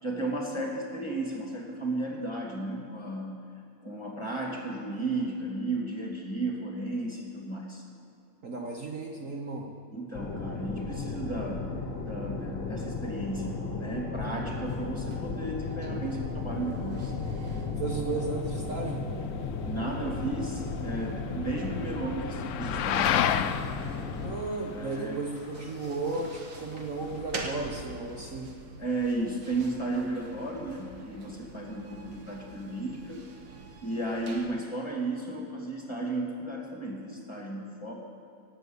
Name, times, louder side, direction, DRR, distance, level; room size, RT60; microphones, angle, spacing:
voice 1, 0.0-3.3 3.8-7.8 9.9-11.7 12.0-17.1 19.7-23.2 24.7-25.2 28.8-33.2 33.8-37.9, right 2 dB, 15° left, -1 dB, 2.1 m, -34 dB
voice 2, 8.4-9.7 17.8-19.0 24.2-28.5, right 3 dB, 50° right, 0 dB, 1.4 m, -34 dB
sound 1, 10.1-24.4, left 4 dB, 40° left, 1.4 m, -35 dB
sound 2, 14.6-34.5, right 3 dB, 85° right, 2.0 m, -47 dB
sound 3, 17.9-27.8, left 10 dB, 80° left, 0.6 m, -34 dB
18.0 x 6.9 x 8.1 m, 2.7 s
omnidirectional pair, 1.9 m